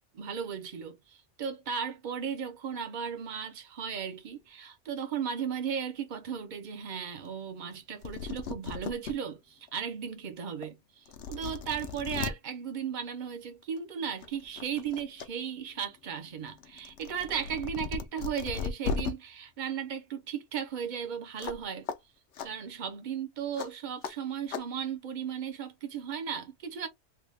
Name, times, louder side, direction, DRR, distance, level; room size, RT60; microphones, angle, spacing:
voice 1, 0.0-21.9 22.4-26.9, right 7 dB, 45° right, 0.8 m, -36 dB
sound 1, 7.8-7.9 8.0-9.1 9.7-9.8 10.6-10.7 11.1-12.3 13.6-13.8 14.2-15.3 15.6-19.1 21.4-21.6 21.9-22.0 22.3-22.5 23.6-23.7 24.0-24.1 24.5-24.6, left 6 dB, 65° left, 0.8 m, -36 dB
3.4 x 2.4 x 3.2 m
omnidirectional pair, 1.3 m